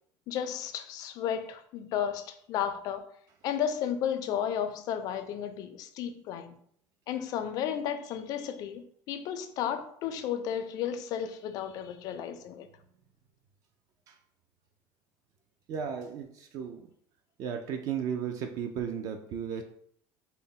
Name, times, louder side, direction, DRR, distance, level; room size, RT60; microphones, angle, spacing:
voice 1, 0.3-3.1 3.4-6.5 7.1-12.7, left 9 dB, 50° left, 0.3 m, -33 dB
voice 2, 15.7-16.9 17.4-19.6, right 7 dB, 45° right, 0.3 m, -35 dB
4.0 x 2.0 x 3.7 m
cardioid pair, 170°, 8 cm